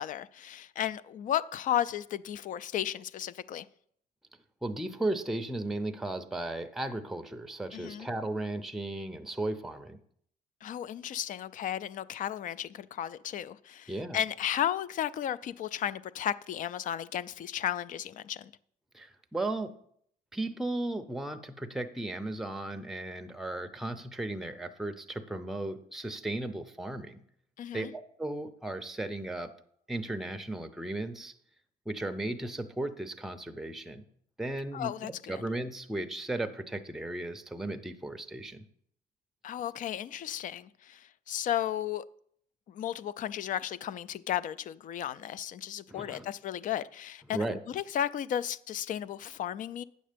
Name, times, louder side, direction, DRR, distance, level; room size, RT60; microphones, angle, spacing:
voice 1, 0.0-3.7 7.7-8.1 10.6-18.5 27.6-27.9 34.7-35.4 39.4-42.0 42.7-49.8, left 10 dB, 50° left, 0.4 m, -34 dB
voice 2, 4.6-10.0 13.9-14.2 18.9-19.7 20.3-27.2 27.7-29.5 29.9-31.3 31.9-34.0 34.4-34.9 35.3-38.6 45.9-46.3 47.3-47.6, right 2 dB, ahead, 0.6 m, -35 dB
8.7 x 6.5 x 5.1 m
cardioid pair, 110°, 17 cm